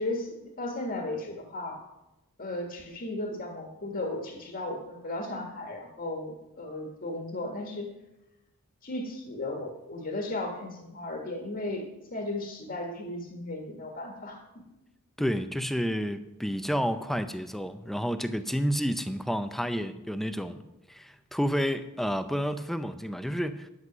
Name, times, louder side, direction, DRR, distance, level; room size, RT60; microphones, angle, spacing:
voice 1, 0.0-1.8 2.4-7.9 8.8-14.4 15.2-15.3, left 2 dB, 45° left, 1.6 m, -35 dB
voice 2, 15.2-20.6 20.9-23.7, equal, ahead, 0.6 m, -30 dB
11.0 x 8.0 x 6.1 m
head